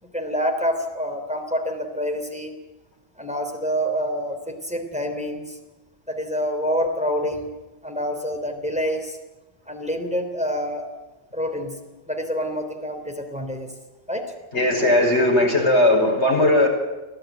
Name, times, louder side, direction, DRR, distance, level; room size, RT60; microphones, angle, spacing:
voice 1, 0.0-2.5 3.2-5.6 6.1-7.5 7.8-9.2 9.7-10.9 11.3-11.8 12.1-13.7 14.1-14.3, equal, 5° right, 4 dB, 3.3 m, -27 dB
voice 2, 14.5-16.7, left 1 dB, 85° left, 1 dB, 5.8 m, -18 dB
25.0 x 17.0 x 9.2 m, 1.1 s
omnidirectional pair, 1.1 m